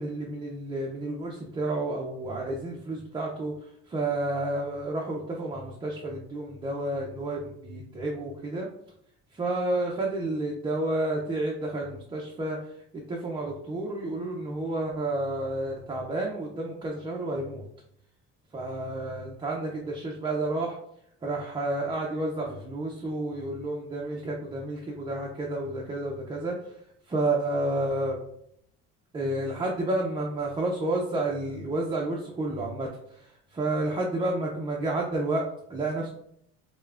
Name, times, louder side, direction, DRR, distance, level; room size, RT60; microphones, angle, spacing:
voice 1, 0.0-8.7 9.3-17.6 18.5-20.8 21.2-26.8 27.1-28.2 29.1-36.1, right 2 dB, 15° right, -2 dB, 0.4 m, -30 dB
6.4 x 2.2 x 2.4 m, 0.70 s
cardioid pair, 155°, 31 cm